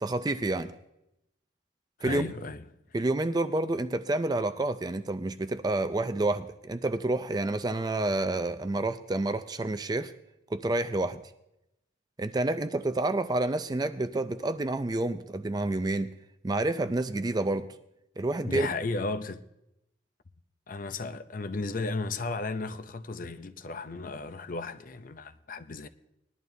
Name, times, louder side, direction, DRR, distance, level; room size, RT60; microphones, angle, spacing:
voice 1, 0.0-0.7 2.0-2.3 2.9-10.1 10.5-11.2 12.2-16.1 16.4-17.7 18.2-18.7, right 2 dB, 20° right, 0.4 m, -29 dB
voice 2, 2.0-2.6 18.4-19.4 20.7-25.9, left 3 dB, 45° left, 0.6 m, -34 dB
20.0 x 11.0 x 2.7 m
head